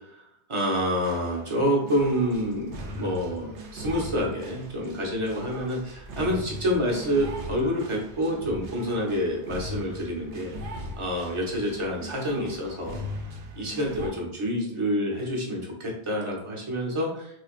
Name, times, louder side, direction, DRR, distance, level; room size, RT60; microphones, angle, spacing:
voice 1, 0.5-10.5 11.0-13.0 13.6-17.3, equal, 30° right, -2 dB, 0.8 m, -28 dB
sound 1, 0.9-14.1, left 1 dB, 75° right, 0.9 m, -40 dB
3.3 x 3.2 x 2.4 m, 0.77 s
omnidirectional pair, 1.2 m